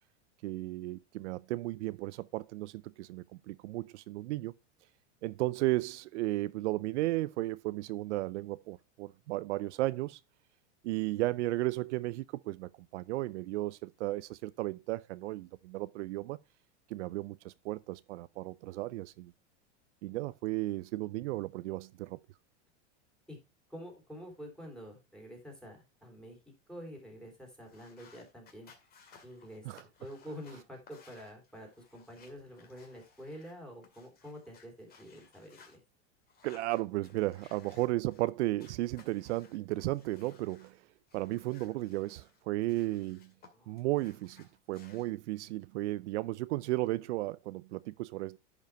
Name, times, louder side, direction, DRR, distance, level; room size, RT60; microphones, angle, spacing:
voice 1, 0.4-4.5 5.2-10.2 10.8-16.4 16.9-19.3 20.0-22.2 29.6-29.8 36.4-40.8 41.1-43.3 43.7-48.4, right 18 dB, 75° right, 0.5 m, -34 dB
voice 2, 23.7-26.4 26.7-28.7 29.2-29.7 30.0-35.8 43.5-43.8, equal, ahead, 3.3 m, -48 dB
sound 1, 27.6-33.5 33.8-35.8 36.3-38.3 38.6-40.7 41.1-43.5 43.8-45.0, left 5 dB, 25° left, 2.2 m, -60 dB
10.5 x 5.3 x 4.5 m
supercardioid pair, 150°, 35 cm